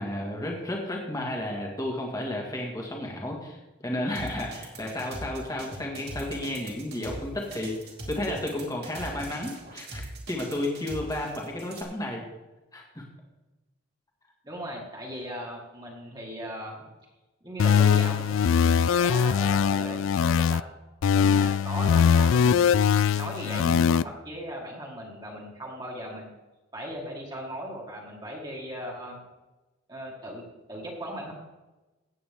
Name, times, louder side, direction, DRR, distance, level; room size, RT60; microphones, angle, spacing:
voice 1, 0.0-10.0 10.3-12.2 12.7-13.0, left 1 dB, 15° left, -1 dB, 1.8 m, -32 dB
sound 1, 4.2-11.8, right 2 dB, 50° right, 2.7 m, -41 dB
voice 2, 14.4-16.9 17.4-20.6 21.1-22.8 23.2-26.3 26.7-29.2 29.9-31.3, equal, 20° right, -3 dB, 2.1 m, -38 dB
sound 2, 17.6-20.6 21.0-24.0, left 7 dB, 70° left, 0.3 m, -21 dB
16.5 x 8.5 x 3.7 m, 1.1 s
head